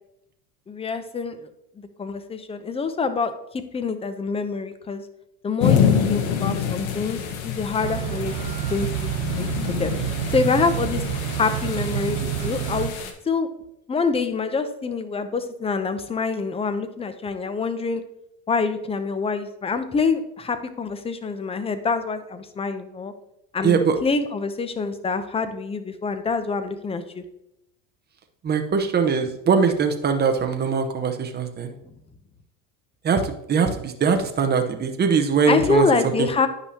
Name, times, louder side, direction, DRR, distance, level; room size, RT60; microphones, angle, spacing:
voice 1, 0.7-1.5 1.8-5.0 5.4-8.3 8.7-11.0 11.3-13.0 13.3-13.5 13.9-18.0 18.5-23.1 23.5-27.2 35.5-36.5, left 4 dB, 15° left, 9 dB, 0.6 m, -26 dB
sound 1, 5.6-13.1, left 7 dB, 90° left, 1.2 m, -26 dB
sound 2, 7.8-12.9, right 10 dB, 75° right, 1.2 m, -28 dB
voice 2, 23.6-24.0 28.4-31.7 33.0-36.3, right 5 dB, 25° right, 5 dB, 0.9 m, -21 dB
9.8 x 5.4 x 2.9 m, 0.80 s
supercardioid pair, 115°, 41 cm